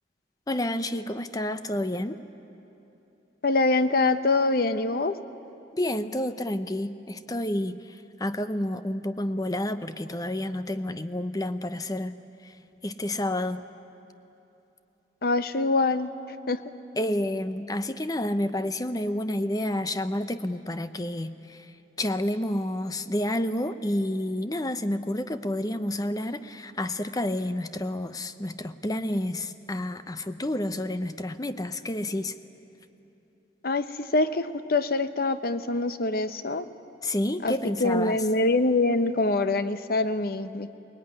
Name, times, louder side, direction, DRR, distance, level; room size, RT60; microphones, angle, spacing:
voice 1, 0.5-2.2 5.7-12.2 12.4-12.5 12.8-13.6 17.0-21.7 22.0-32.3 37.0-38.2, left 1 dB, 20° left, 11 dB, 0.7 m, -29 dB
voice 2, 3.4-5.2 15.2-16.1 16.5-16.6 33.6-36.7 37.4-37.5 37.8-40.8, left 2 dB, 55° left, 11 dB, 0.9 m, -24 dB
24.0 x 19.5 x 9.8 m, 3.0 s
head